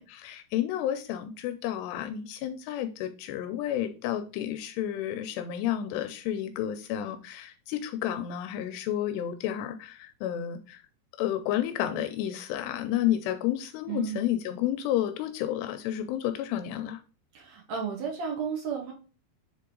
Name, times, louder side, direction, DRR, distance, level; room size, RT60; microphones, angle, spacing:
voice 1, 0.0-10.8 11.2-17.0, left 11 dB, 85° left, 8 dB, 2.6 m, -31 dB
voice 2, 13.9-14.3 17.3-18.9, right 6 dB, 80° right, 1 dB, 1.5 m, -33 dB
7.2 x 3.7 x 3.8 m, 0.36 s
omnidirectional pair, 4.9 m